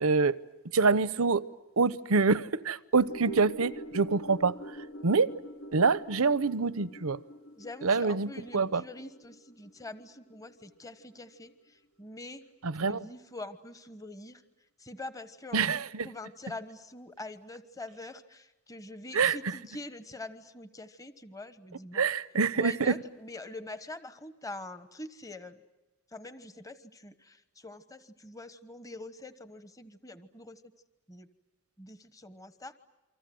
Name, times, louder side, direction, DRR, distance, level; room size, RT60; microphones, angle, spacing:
voice 1, 0.0-0.4 0.7-1.4 1.8-4.8 5.0-5.3 5.7-7.2 7.8-8.8 12.6-13.1 15.5-16.1 19.1-19.4 21.9-22.9, right 4 dB, 80° right, 0.9 m, -26 dB
sound 1, 2.9-11.4 11.7-11.8, right 1 dB, 60° left, 1.3 m, -45 dB
voice 2, 7.6-12.4 12.8-14.4 14.8-22.1 22.5-25.6 26.1-30.6 31.1-31.3 31.8-32.7, left 2 dB, 15° left, 1.1 m, -44 dB
29.0 x 25.0 x 7.8 m
head